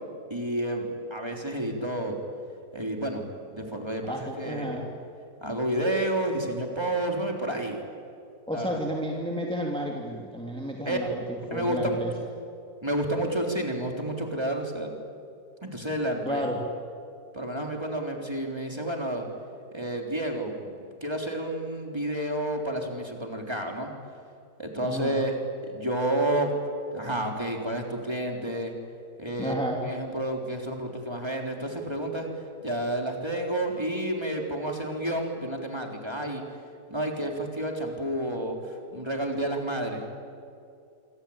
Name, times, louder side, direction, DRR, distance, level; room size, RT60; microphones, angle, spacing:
voice 1, 0.3-2.2 2.7-3.2 3.5-4.8 5.4-7.8 8.5-8.8 10.9-11.0 11.5-11.9 12.8-15.0 15.6-16.5 17.3-19.3 19.7-23.9 24.6-25.4 25.7-26.5 26.9-28.7 29.2-29.5 29.8-32.3 32.6-36.4 36.9-40.0, right 1 dB, 15° right, 1 dB, 3.8 m, -30 dB
voice 2, 4.1-4.8 8.5-12.1 16.2-16.6 24.8-25.2 29.4-29.8, equal, 5° left, -1 dB, 2.7 m, -32 dB
26.5 x 25.0 x 8.8 m, 2.4 s
omnidirectional pair, 1.7 m